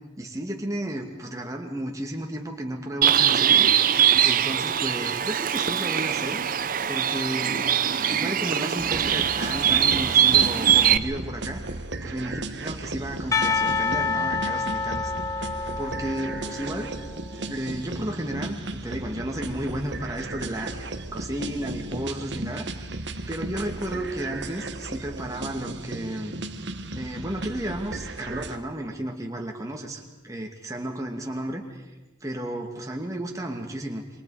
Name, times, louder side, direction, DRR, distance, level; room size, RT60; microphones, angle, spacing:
voice 1, 0.2-3.8 4.2-6.4 6.9-7.7 8.1-11.6 12.0-15.4 15.8-16.9 17.3-22.7 23.3-26.3 26.9-31.8 32.2-34.0, right 1 dB, 15° right, 1 dB, 2.4 m, -33 dB
Bird, 3.0-11.0, right 9 dB, 45° right, 0.7 m, -22 dB
sound 1, 8.8-28.6, right 2 dB, 60° right, 1.4 m, -35 dB
Percussion, 13.3-17.2, left 4 dB, 15° left, 0.6 m, -28 dB
28.0 x 24.0 x 5.1 m, 1.1 s
head